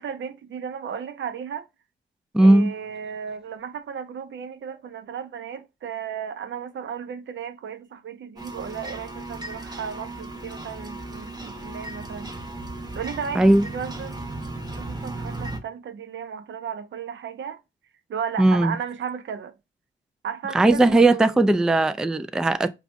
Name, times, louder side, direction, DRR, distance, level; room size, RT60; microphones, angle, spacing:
voice 1, 0.0-1.7 2.4-12.3 12.9-14.4 14.7-17.6 18.1-19.5 20.2-21.4, right 7 dB, 65° right, 0.6 m, -34 dB
voice 2, 2.3-2.7 13.4-13.6 18.4-18.8 20.5-22.8, right 2 dB, 5° right, 0.3 m, -18 dB
sound 1, 8.4-15.6, right 2 dB, 20° right, 0.9 m, -36 dB
4.9 x 2.3 x 2.5 m
cardioid pair, 60°, 21 cm